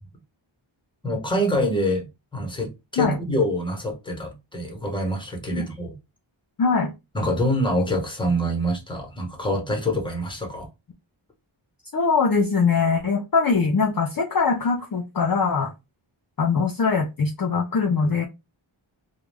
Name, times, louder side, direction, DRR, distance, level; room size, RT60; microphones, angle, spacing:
voice 1, 1.0-2.0 2.3-5.9 7.1-10.7, equal, 10° left, 1 dB, 0.9 m, -25 dB
voice 2, 6.6-6.9 11.9-15.7 16.4-18.2, left 5 dB, 45° left, 1 dB, 0.5 m, -22 dB
2.3 x 2.0 x 3.3 m, 0.24 s
wide cardioid pair, 70°, 49 cm